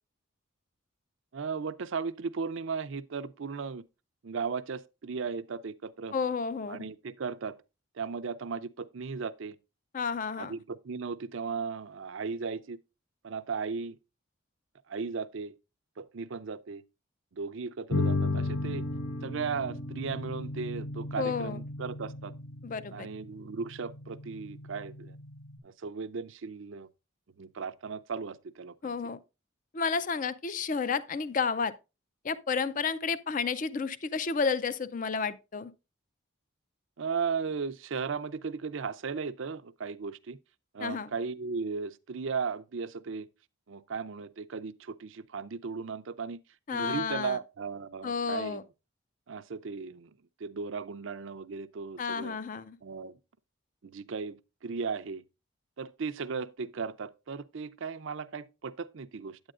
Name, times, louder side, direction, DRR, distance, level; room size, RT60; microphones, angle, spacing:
voice 1, 1.3-3.8 4.2-6.1 6.7-7.6 8.0-9.6 10.4-12.8 13.2-14.0 14.9-15.5 16.0-16.8 17.3-18.8 19.2-22.3 22.9-25.2 25.6-26.9 27.4-28.9 37.0-40.4 40.7-43.3 43.7-46.4 46.7-48.6 49.3-50.1 50.4-52.4 52.8-53.2 53.8-55.2 55.8-59.4, right 5 dB, 65° right, 0.5 m, -36 dB
voice 2, 6.1-6.8 9.9-10.5 21.2-21.6 22.6-23.1 28.8-29.2 29.7-31.7 32.2-35.7 40.8-41.1 46.7-47.4 48.0-48.6 52.0-52.8, left 5 dB, 40° left, 0.4 m, -31 dB
sound 1, 17.9-25.6, left 2 dB, 90° left, 1.1 m, -35 dB
9.0 x 8.8 x 2.4 m
head